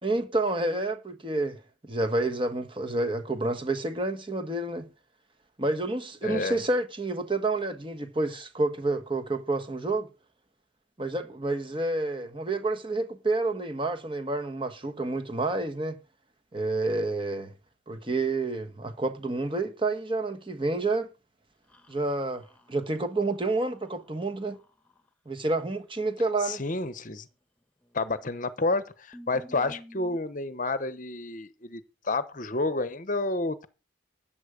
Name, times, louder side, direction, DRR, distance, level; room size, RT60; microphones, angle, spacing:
voice 1, 0.0-4.9 5.6-10.1 11.0-16.0 16.5-17.5 17.9-21.1 21.9-24.6 25.2-26.6, right 2 dB, 25° right, 1.4 m, -29 dB
voice 2, 6.2-6.6 26.5-27.2 27.9-33.7, left 2 dB, 40° left, 0.9 m, -30 dB
sound 1, 21.7-25.1 27.8-28.3 28.6-28.7 29.1-30.2, equal, 5° left, 1.6 m, -52 dB
13.5 x 9.0 x 5.0 m
head